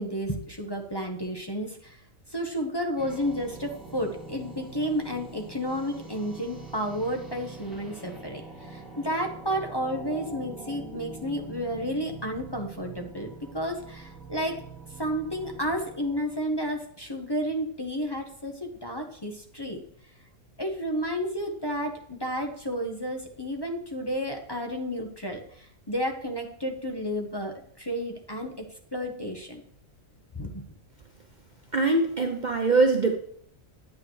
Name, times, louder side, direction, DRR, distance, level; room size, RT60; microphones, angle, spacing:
voice 1, 0.0-2.0 2.3-13.3 13.5-14.6 15.0-19.8 20.6-28.5 28.9-29.6 30.3-30.6, equal, 20° left, 2 dB, 1.0 m, -31 dB
sound 1, 3.0-17.1, right 3 dB, ahead, 2.3 m, -44 dB
voice 2, 31.7-33.1, right 3 dB, 40° right, 4 dB, 0.8 m, -22 dB
9.6 x 8.5 x 3.2 m, 0.63 s
omnidirectional pair, 1.4 m